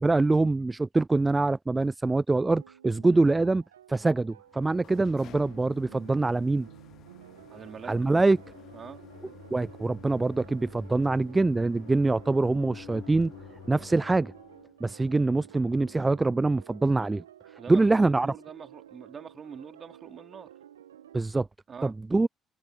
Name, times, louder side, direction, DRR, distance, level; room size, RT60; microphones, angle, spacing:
voice 1, 0.0-3.6 3.9-6.7 7.9-8.4 9.5-13.3 13.7-14.3 14.8-17.2 17.7-18.3 21.1-21.5 21.8-22.3, right 3 dB, 20° right, 0.3 m, -24 dB
sound 1, 2.5-21.2, right 11 dB, 90° right, 1.4 m, -52 dB
sound 2, 4.5-14.8, left 12 dB, 65° left, 0.7 m, -50 dB
voice 2, 7.5-8.0 8.7-9.0 17.6-20.5 21.7-22.0, right 6 dB, 45° right, 4.1 m, -44 dB
hypercardioid pair, 50°, 0 cm